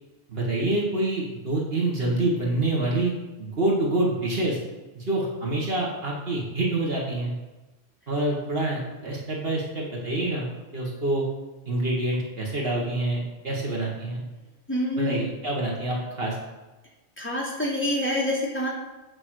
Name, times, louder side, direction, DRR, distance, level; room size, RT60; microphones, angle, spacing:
voice 1, 0.3-3.1 3.4-4.6 5.0-7.3 8.1-10.5 10.7-11.2 11.7-14.2 15.0-16.4, right 2 dB, 60° right, -3 dB, 2.1 m, -26 dB
voice 2, 14.7-15.1 17.2-18.7, left 1 dB, 10° left, -7 dB, 3.1 m, -26 dB
9.0 x 5.5 x 6.5 m, 1.1 s
omnidirectional pair, 1.1 m